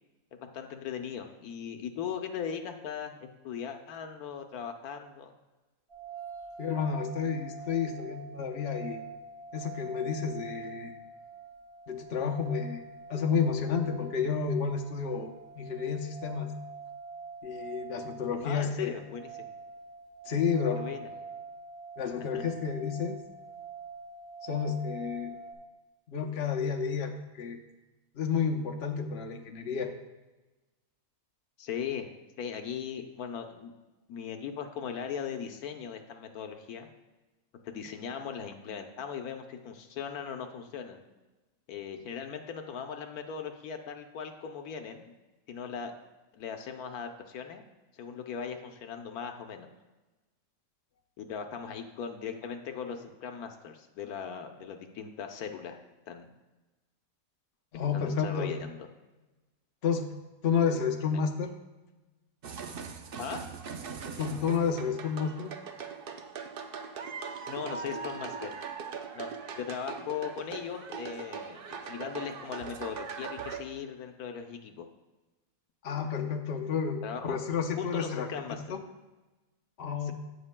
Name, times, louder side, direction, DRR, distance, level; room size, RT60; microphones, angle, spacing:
voice 1, 0.3-5.3 18.4-19.4 20.8-21.1 22.3-22.4 31.6-32.1 32.4-33.7 34.1-36.9 37.6-41.0 41.7-45.2 45.5-45.9 46.3-47.6 47.9-49.7 51.2-55.8 56.1-56.3 57.9-58.9 63.2-63.4 67.5-68.5 69.1-69.3 69.6-71.6 71.9-74.9 77.0-77.4 77.7-78.6 80.0-80.1, left 7 dB, 80° left, 5 dB, 1.2 m, -39 dB
sound 1, 5.9-25.5, right 5 dB, 35° right, 1.7 m, -45 dB
voice 2, 6.6-9.0 9.5-10.9 11.9-12.8 13.1-16.5 17.4-18.9 20.3-20.8 22.0-23.2 24.4-25.3 26.1-27.6 28.1-29.9 57.7-58.5 59.8-61.5 64.2-65.6 75.8-78.8 79.8-80.1, left 6 dB, 50° left, 3 dB, 0.9 m, -31 dB
sound 2, 62.4-73.6, right 5 dB, 55° right, 0.6 m, -40 dB
17.0 x 6.2 x 2.2 m, 1.1 s
omnidirectional pair, 1.6 m